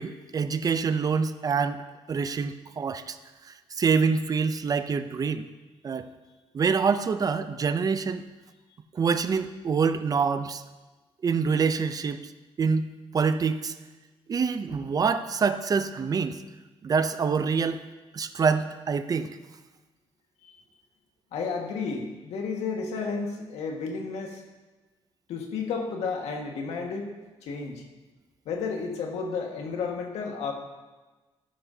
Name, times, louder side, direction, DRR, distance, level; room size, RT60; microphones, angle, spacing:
voice 1, 0.0-1.8 2.1-3.2 3.8-5.5 5.8-6.1 6.5-8.2 8.9-10.6 11.2-12.2 12.6-12.9 13.1-13.7 14.3-16.4 16.8-17.8 18.1-19.4, right 5 dB, 35° right, 11 dB, 0.5 m, -26 dB
voice 2, 21.3-24.4 25.3-27.1 27.4-27.8 28.4-30.5, left 5 dB, 90° left, 2 dB, 1.7 m, -32 dB
13.5 x 11.0 x 2.8 m, 1.2 s
cardioid pair, 130°, 11 cm